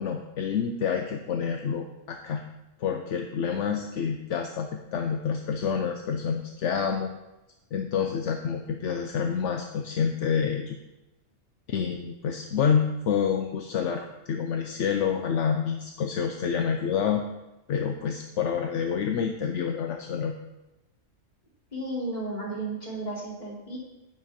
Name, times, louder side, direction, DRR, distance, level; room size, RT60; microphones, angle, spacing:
voice 1, 0.0-2.4 2.8-7.1 7.7-10.8 11.7-17.2 17.7-20.4, left 7 dB, 70° left, 5 dB, 1.1 m, -28 dB
voice 2, 21.7-23.8, right 2 dB, 35° left, -4 dB, 3.2 m, -33 dB
11.0 x 9.8 x 4.3 m, 0.97 s
omnidirectional pair, 1.3 m